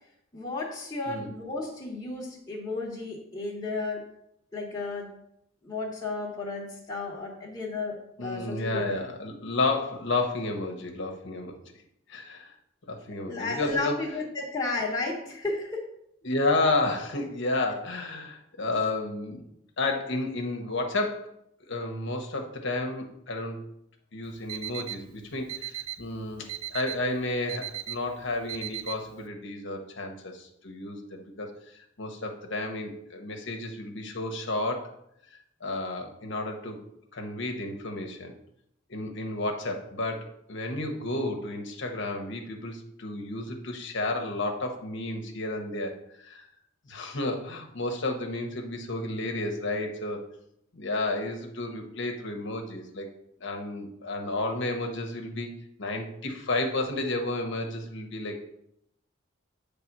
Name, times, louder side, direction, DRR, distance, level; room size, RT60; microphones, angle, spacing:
voice 1, 0.3-4.0 4.5-5.2 5.6-9.0 13.2-15.8, left 3 dB, 20° left, -6 dB, 1.2 m, -33 dB
voice 2, 8.2-11.6 12.1-12.5 12.9-14.0 16.2-19.5 19.8-21.3 21.7-23.6 24.1-34.9 35.3-36.8 37.1-38.3 38.9-46.5 46.9-50.2 50.7-53.1 53.4-55.5 55.8-58.4, left 2 dB, 60° left, 3 dB, 1.0 m, -31 dB
Alarm, 24.2-29.3, right 13 dB, 90° right, 0.4 m, -39 dB
8.3 x 3.5 x 6.0 m, 0.77 s
head